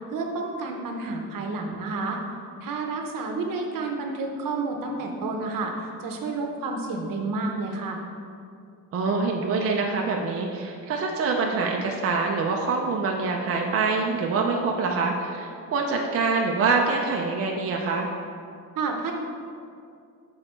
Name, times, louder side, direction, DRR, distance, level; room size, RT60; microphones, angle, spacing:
voice 1, 0.1-2.2 2.6-8.0 18.8-19.1, right 3 dB, 65° right, 2 dB, 0.8 m, -30 dB
voice 2, 8.9-18.1, right 4 dB, 40° right, 0 dB, 0.5 m, -25 dB
6.2 x 3.9 x 4.4 m, 2.4 s
wide cardioid pair, 165°, 35 cm